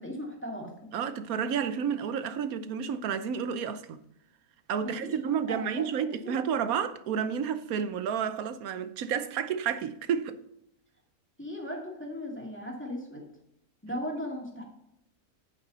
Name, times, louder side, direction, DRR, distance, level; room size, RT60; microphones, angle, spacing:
voice 1, 0.0-1.0 4.8-5.2 5.5-6.3 11.4-13.3 13.8-14.6, equal, 5° left, 2.2 m, -37 dB
voice 2, 0.9-4.0 4.7-10.4, right 7 dB, 70° right, 1.1 m, -31 dB
9.5 x 9.0 x 4.0 m
omnidirectional pair, 1.6 m